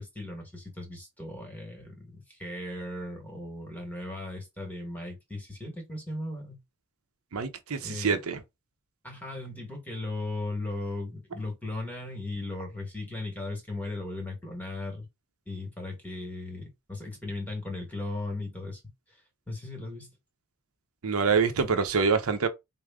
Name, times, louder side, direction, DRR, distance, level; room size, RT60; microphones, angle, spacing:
voice 1, 0.0-6.6 7.8-8.2 9.0-15.1 15.5-18.8 19.1-19.2 19.5-20.1, left 2 dB, 10° left, 1.2 m, -37 dB
voice 2, 7.3-8.4 21.0-22.5, right 5 dB, 75° right, 0.6 m, -26 dB
4.8 x 2.0 x 3.5 m
head